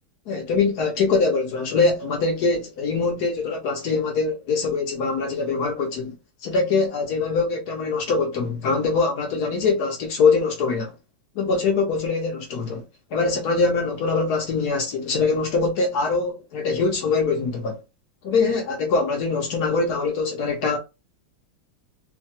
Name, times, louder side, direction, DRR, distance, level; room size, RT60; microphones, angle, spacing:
voice 1, 0.3-6.1 6.4-10.9 11.4-12.8 13.1-17.8 18.2-20.8, left 4 dB, 65° left, 1.0 m, -23 dB
3.2 x 2.2 x 2.7 m
omnidirectional pair, 2.2 m